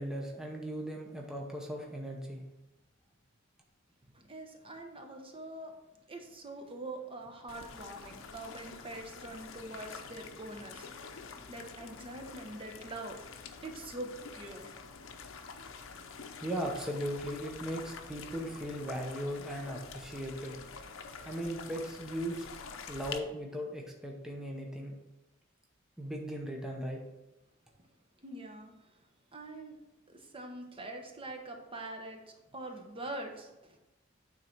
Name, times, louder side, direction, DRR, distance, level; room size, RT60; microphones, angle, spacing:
voice 1, 0.0-2.4 16.4-20.6 21.2-22.5 22.9-25.0 26.0-27.0, equal, 5° right, 0 dB, 0.8 m, -38 dB
voice 2, 4.1-5.7 6.1-10.9 11.5-13.2 13.6-14.7 28.2-28.7 29.3-29.8 30.1-33.8, right 2 dB, 25° right, 3 dB, 0.9 m, -44 dB
sound 1, 7.5-23.2, left 5 dB, 75° left, 0.7 m, -47 dB
9.1 x 3.8 x 4.5 m, 1.0 s
head